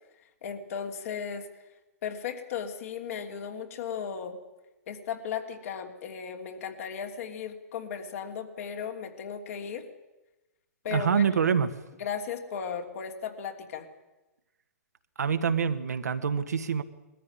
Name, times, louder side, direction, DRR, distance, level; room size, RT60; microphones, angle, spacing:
voice 1, 0.4-1.5 2.0-4.4 4.9-9.9 10.8-11.2 12.0-13.9, left 7 dB, 60° left, 3 dB, 3.0 m, -36 dB
voice 2, 10.9-11.7 15.2-16.8, right 6 dB, 90° right, 8 dB, 1.5 m, -26 dB
20.5 x 14.5 x 9.8 m, 1.1 s
hypercardioid pair, 130°, 9 cm